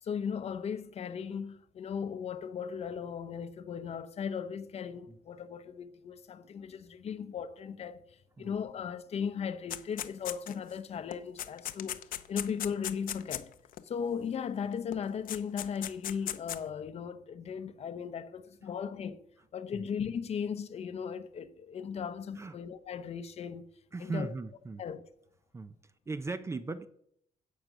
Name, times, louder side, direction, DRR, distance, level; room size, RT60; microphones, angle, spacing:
voice 1, 0.0-12.0 12.3-13.5 13.8-19.3 19.5-23.6 24.0-24.3 24.8-25.0, left 7 dB, 45° left, 0.8 m, -37 dB
sound 1, 9.7-10.7 11.1-13.8 14.9-15.0 15.3-16.6, left 12 dB, 80° left, 0.7 m, -37 dB
voice 2, 23.9-24.8 25.5-26.9, right 3 dB, 20° right, 0.6 m, -38 dB
16.5 x 6.7 x 6.1 m
wide cardioid pair, 175°, 14 cm